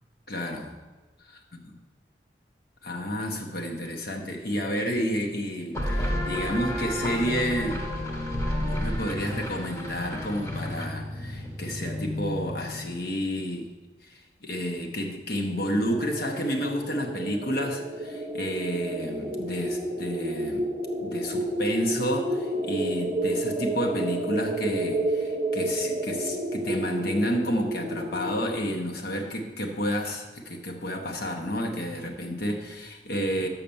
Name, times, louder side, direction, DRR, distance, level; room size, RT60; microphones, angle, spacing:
voice 1, 0.3-0.7 1.2-1.4 2.8-7.8 8.3-13.7 14.0-20.7 21.0-33.5, equal, 60° left, 2 dB, 0.9 m, -30 dB
sound 1, 5.7-13.1, left 1 dB, 15° left, 1.0 m, -31 dB
sound 2, 15.9-28.6, right 1 dB, 30° right, 0.8 m, -30 dB
6.6 x 5.8 x 6.9 m, 1.2 s
head